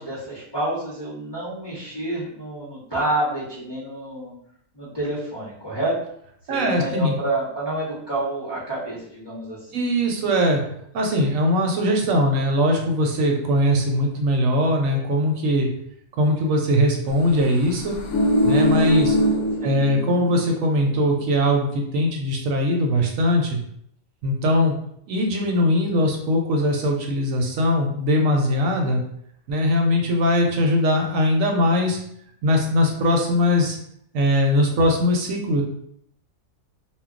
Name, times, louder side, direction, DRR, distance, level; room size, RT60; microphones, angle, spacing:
voice 1, 0.0-4.3 4.7-6.0 6.5-9.7 19.6-19.8, right 1 dB, 25° left, -9 dB, 0.6 m, -28 dB
voice 2, 6.5-7.1 9.7-10.6 10.9-15.7 16.2-18.0 18.4-19.2 19.6-23.6 24.2-24.7 25.1-29.0 29.5-32.0 32.4-33.8 34.1-35.6, left 1 dB, 75° right, 1 dB, 0.9 m, -21 dB
sound 1, 17.7-20.4 20.7-20.8, equal, 80° left, 1.0 m, -21 dB
2.2 x 2.2 x 3.6 m, 0.70 s
omnidirectional pair, 1.5 m